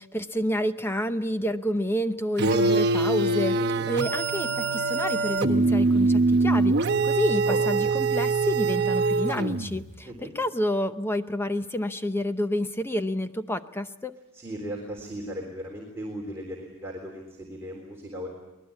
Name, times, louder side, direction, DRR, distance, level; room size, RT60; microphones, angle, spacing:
voice 1, 0.0-3.6 3.9-14.1, equal, 10° left, 10 dB, 0.7 m, -29 dB
sound 1, 2.4-9.9, right 3 dB, 50° right, 1.1 m, -23 dB
voice 2, 3.5-3.9 7.5-7.9 10.0-10.3 14.3-18.3, equal, 10° right, -1 dB, 3.6 m, -37 dB
24.5 x 19.5 x 8.6 m, 0.99 s
head